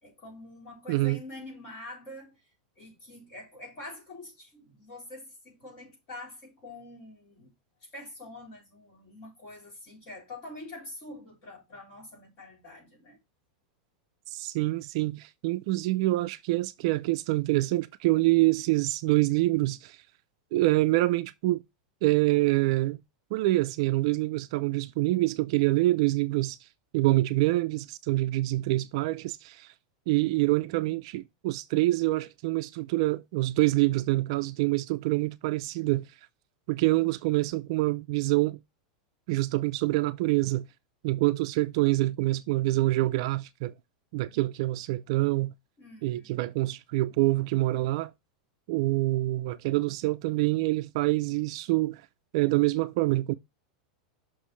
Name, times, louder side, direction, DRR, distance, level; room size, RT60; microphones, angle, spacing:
voice 1, 0.0-2.5 2.8-7.5 7.8-13.2 45.8-46.5, left 2 dB, 30° left, 3.7 m, -45 dB
voice 2, 0.9-1.2 14.3-20.0 20.5-21.6 22.0-23.0 23.3-26.7 26.9-29.7 30.1-36.1 36.7-38.6 39.3-40.7 41.0-43.7 44.1-45.5 46.0-48.1 48.7-52.0 52.3-53.3, right 19 dB, 45° right, 0.4 m, -26 dB
6.4 x 5.9 x 3.1 m
supercardioid pair, 175°, 4 cm